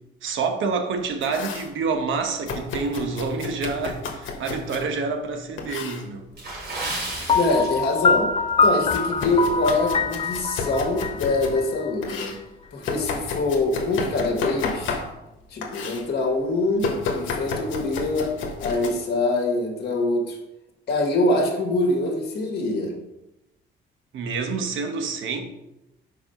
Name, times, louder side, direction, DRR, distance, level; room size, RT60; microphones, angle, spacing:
voice 1, 0.2-6.2 6.5-6.6 24.1-25.4, right 4 dB, 80° right, 5 dB, 1.1 m, -27 dB
Domestic sounds home sounds, 1.0-1.7 2.5-4.9 5.6-6.1 6.8-7.5 7.9-11.6 12.0-15.3 15.6-16.1 16.8-18.9, left 4 dB, 75° left, 1.2 m, -32 dB
Water / Splash splatter, 6.3-8.2 8.5-8.8 9.3-9.5 10.0-10.1, right 2 dB, 55° right, 2.7 m, -33 dB
voice 2, 7.3-8.3 8.6-12.4 12.7-15.0 15.5-20.4 20.9-23.0, left 2 dB, 55° left, 2 dB, 1.7 m, -24 dB
Piano, 7.3-12.1, left 4 dB, 30° left, 0.4 m, -23 dB
4.8 x 4.8 x 5.7 m, 0.90 s
cardioid pair, 90°, 20 cm